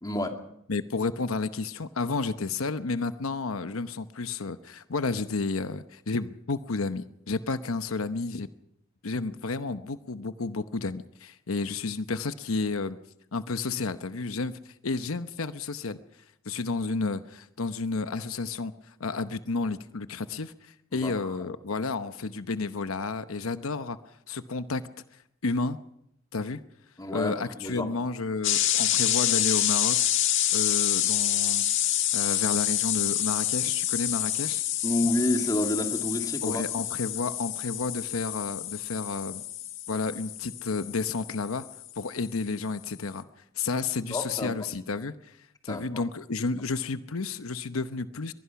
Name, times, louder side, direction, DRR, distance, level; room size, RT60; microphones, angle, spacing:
voice 1, 0.0-0.4 20.9-21.1 21.4-21.5 27.0-27.9 34.8-36.6 44.1-44.5 45.7-46.0, left 1 dB, 20° left, 4 dB, 2.2 m, -29 dB
voice 2, 0.7-8.5 9.0-13.0 13.3-16.0 16.4-24.0 24.3-25.8 26.3-26.6 27.1-30.0 30.5-31.7 32.1-34.6 36.4-39.4 39.9-41.6 42.0-43.2 43.5-45.4 45.6-48.3, left 3 dB, 85° left, 11 dB, 0.9 m, -31 dB
sound 1, 28.4-42.0, left 12 dB, 65° left, 1.6 m, -27 dB
23.0 x 19.5 x 5.9 m, 0.75 s
head